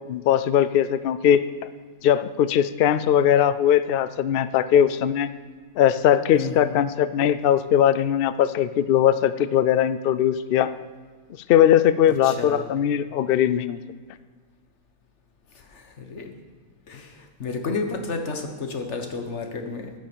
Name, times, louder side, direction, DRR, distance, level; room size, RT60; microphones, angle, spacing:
voice 1, 0.1-1.5 2.0-5.3 5.8-10.7 11.5-13.8, left 10 dB, 85° left, 14 dB, 0.5 m, -20 dB
voice 2, 6.3-6.8 12.2-12.6 15.5-16.3 16.9-19.9, left 4 dB, 50° left, 5 dB, 1.5 m, -31 dB
10.5 x 10.0 x 6.9 m, 1.5 s
omnidirectional pair, 1.5 m